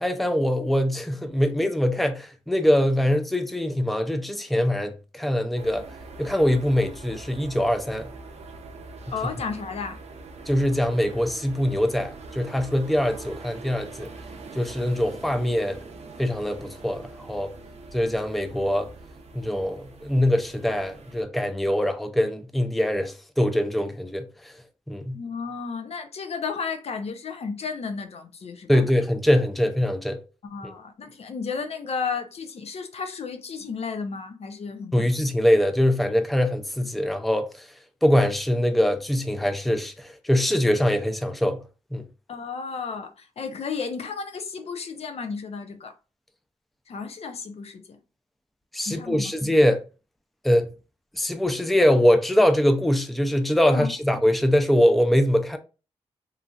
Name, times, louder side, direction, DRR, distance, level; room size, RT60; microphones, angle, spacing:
voice 1, 0.0-5.9 6.2-8.1 10.5-14.1 14.6-15.8 16.2-17.5 17.9-18.9 19.3-24.5 24.9-25.2 28.7-30.2 30.6-30.7 34.9-37.7 38.0-41.6 41.9-42.1 48.7-49.8 50.4-50.7 51.1-55.6, equal, ahead, 0.4 m, -23 dB
sound 1, 5.6-21.2, right 3 dB, 75° right, 0.5 m, -43 dB
voice 2, 9.1-10.0 25.1-28.8 30.4-35.1 42.3-45.9 46.9-48.0 48.9-49.3 53.7-53.9, left 5 dB, 70° left, 0.5 m, -33 dB
3.1 x 2.4 x 2.3 m
cardioid pair, 65°, 11 cm